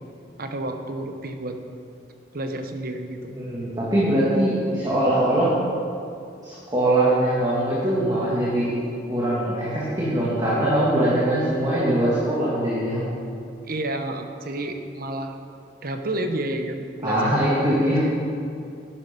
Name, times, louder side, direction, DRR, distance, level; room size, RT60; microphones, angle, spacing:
voice 1, 0.4-1.6 2.3-3.3 13.6-15.3 15.8-17.9, right 1 dB, 55° right, 6 dB, 1.0 m, -30 dB
voice 2, 3.3-5.6 6.4-8.7 9.1-13.0 17.0-18.0, right 1 dB, 25° right, -8 dB, 2.2 m, -22 dB
11.5 x 10.0 x 5.3 m, 2.5 s
head